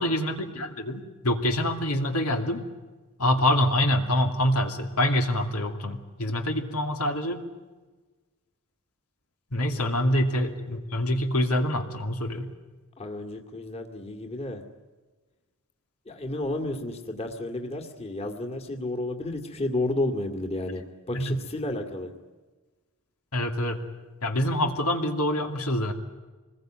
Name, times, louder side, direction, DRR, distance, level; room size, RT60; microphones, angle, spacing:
voice 1, 0.0-2.6 3.2-7.4 9.5-12.5 21.1-21.4 23.3-23.8 24.2-25.9, left 1 dB, 80° left, 4 dB, 2.7 m, -26 dB
voice 2, 13.0-14.6 16.1-22.1, left 2 dB, 30° left, 5 dB, 2.2 m, -32 dB
26.0 x 20.5 x 9.2 m, 1.3 s
head